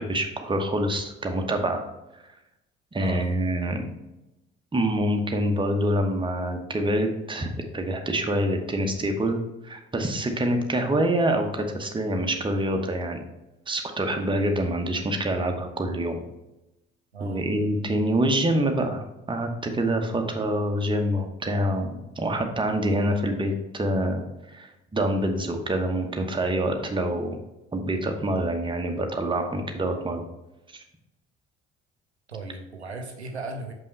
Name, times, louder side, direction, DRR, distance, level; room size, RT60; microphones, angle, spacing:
voice 1, 0.0-1.8 2.9-3.8 4.7-9.4 9.6-13.2 13.7-16.2 17.2-24.2 24.5-27.4 27.7-30.2 30.7-30.8, right 1 dB, 15° right, 4 dB, 1.0 m, -26 dB
voice 2, 3.0-3.3 17.1-17.5 32.3-33.7, right 3 dB, 90° right, 4 dB, 0.5 m, -36 dB
5.6 x 5.4 x 3.2 m, 0.95 s
figure-of-eight pair, 50°, 32 cm